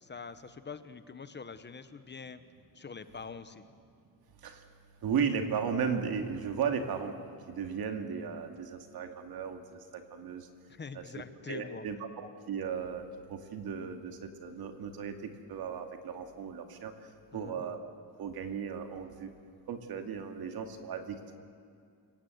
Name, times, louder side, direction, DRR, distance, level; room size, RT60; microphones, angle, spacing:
voice 1, 0.0-2.4 2.7-3.6 10.7-11.9 17.3-17.6, left 5 dB, 30° left, 11 dB, 1.0 m, -45 dB
voice 2, 5.0-7.1 7.5-10.5 10.9-11.0 11.5-16.9 17.3-19.3 19.7-21.2, right 6 dB, 75° right, 5 dB, 2.3 m, -35 dB
29.0 x 18.0 x 8.0 m, 2.4 s
cardioid pair, 130°, 37 cm